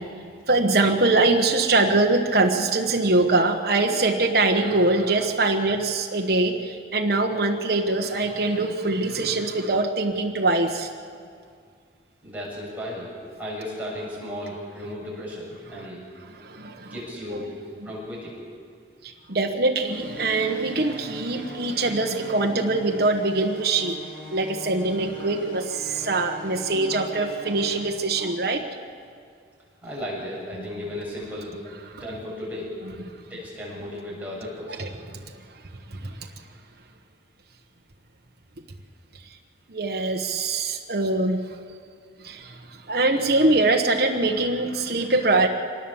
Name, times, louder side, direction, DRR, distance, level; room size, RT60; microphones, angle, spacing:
voice 1, 0.0-10.9 15.7-15.8 16.3-16.9 17.3-17.5 19.0-24.0 24.3-28.6 30.5-30.6 31.9-32.0 34.7-34.9 35.9-36.3 39.7-41.6 42.2-45.5, right 2 dB, 55° right, 2 dB, 1.3 m, -23 dB
voice 2, 12.2-13.1 13.4-16.0 16.9-17.5 17.8-18.4 29.8-31.6 31.9-32.7 33.3-34.9, left 1 dB, 10° right, -6 dB, 7.2 m, -35 dB
sound 1, 19.9-27.9, right 1 dB, 10° left, 5.5 m, -41 dB
25.0 x 19.5 x 7.2 m, 2.1 s
head